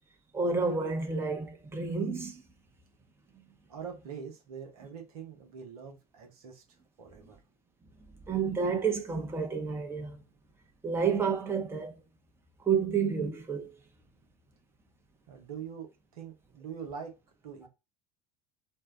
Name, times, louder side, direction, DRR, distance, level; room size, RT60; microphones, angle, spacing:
voice 1, 0.3-2.4 8.3-10.2 10.8-11.9 12.6-13.7, right 5 dB, 10° right, 0.7 m, -30 dB
voice 2, 3.7-6.6 7.0-7.4 15.3-15.9 16.1-17.1 17.4-17.7, right 7 dB, 70° right, 0.9 m, -43 dB
2.7 x 2.1 x 3.5 m
figure-of-eight pair, 65°, 20 cm